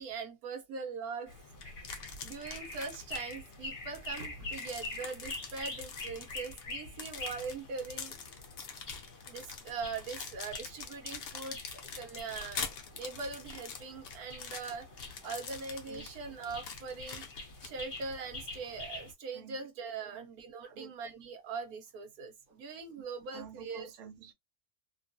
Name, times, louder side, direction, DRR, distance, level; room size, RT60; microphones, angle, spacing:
voice 1, 0.0-1.3 2.2-8.1 9.3-14.9 15.2-17.2 17.6-23.9, right 4 dB, 85° right, 1.3 m, -41 dB
sound 1, 1.3-19.1, left 2 dB, 40° left, 1.0 m, -46 dB
sound 2, 1.6-3.6 3.9-18.1, left 6 dB, 55° left, 0.7 m, -45 dB
voice 2, 23.3-24.3, right 7 dB, 65° right, 0.8 m, -49 dB
2.9 x 2.3 x 2.6 m
omnidirectional pair, 1.5 m